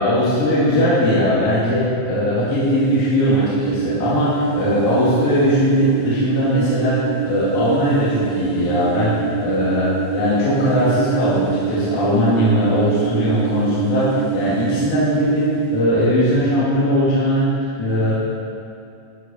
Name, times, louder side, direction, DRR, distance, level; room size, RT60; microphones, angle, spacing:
voice 1, 0.0-18.1, left 1 dB, 65° left, -10 dB, 3.5 m, -19 dB
sound 1, 2.6-15.8, right 12 dB, 50° right, 1.5 m, -25 dB
14.0 x 8.2 x 5.4 m, 2.5 s
omnidirectional pair, 3.8 m